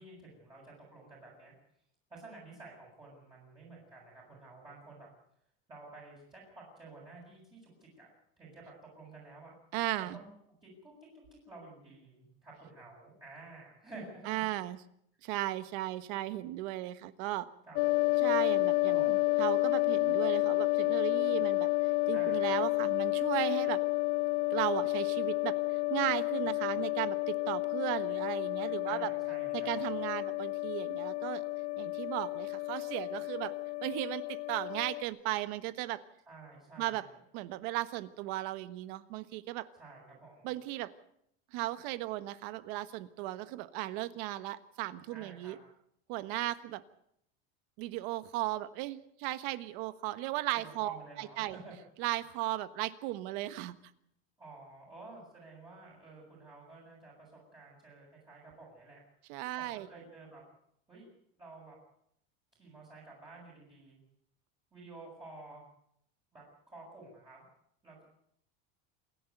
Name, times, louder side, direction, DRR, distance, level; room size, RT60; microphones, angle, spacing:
voice 1, 0.0-1.5 2.1-5.1 5.7-8.6 8.9-9.5 10.1-10.3 10.6-10.9 11.4-14.5 17.7-18.1 18.8-19.2 22.1-22.6 28.8-29.9 36.3-37.1 39.8-40.5 45.1-45.6 50.5-51.7 54.4-59.0 59.6-60.4 60.9-61.1 61.4-61.8 62.6-64.0 64.7-65.6 66.3-67.4 67.8-68.0, right 3 dB, 15° right, -6 dB, 6.7 m, -51 dB
voice 2, 9.7-10.2 14.3-14.8 15.2-17.5 18.2-23.8 24.5-29.1 29.5-31.5 31.8-33.5 33.8-36.0 36.8-37.0 37.3-39.7 40.4-40.9 41.5-45.6 46.1-46.8 47.8-51.6 52.0-53.8 59.3-59.9, right 16 dB, 65° right, 14 dB, 1.4 m, -36 dB
sound 1, 17.8-35.0, left 23 dB, 75° left, 0.9 m, -31 dB
27.5 x 11.0 x 9.2 m, 0.73 s
cardioid pair, 165°, 31 cm